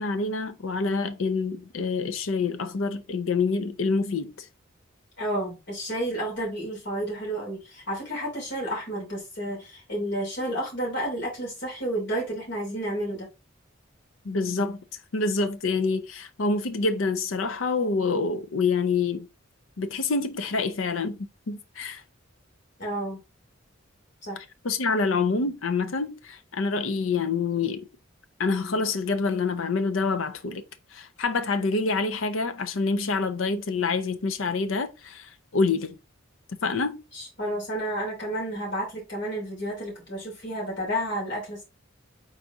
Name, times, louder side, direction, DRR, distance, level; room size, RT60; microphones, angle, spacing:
voice 1, 0.0-4.5 14.2-14.8 15.1-19.3 19.8-22.0 24.6-27.9 28.4-30.6 30.9-36.0 36.6-37.0, left 4 dB, 80° left, 0.6 m, -27 dB
voice 2, 5.2-13.3 22.8-23.2 24.2-24.4 37.1-41.6, right 1 dB, 60° left, 2.9 m, -31 dB
4.7 x 4.1 x 2.6 m
head